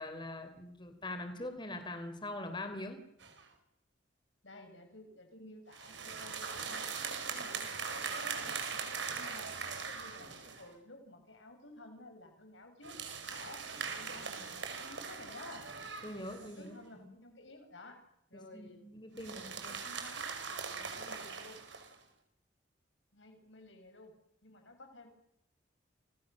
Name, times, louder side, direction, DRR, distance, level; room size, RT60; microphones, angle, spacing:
voice 1, 0.0-3.0 16.0-17.1 18.3-19.7, left 1 dB, 25° left, 8 dB, 3.7 m, -43 dB
sound 1, 3.2-3.5 5.7-10.7 12.8-16.7 19.2-21.9, right 5 dB, 75° right, 5.1 m, -41 dB
voice 2, 4.4-6.9 7.3-9.5 9.9-13.0 13.3-13.6 13.9-15.6 16.2-18.0 18.3-18.8 19.0-20.3 20.7-21.6 23.1-24.1 24.4-25.1, left 2 dB, 85° left, 5 dB, 6.4 m, -53 dB
29.5 x 29.5 x 6.7 m, 0.79 s
head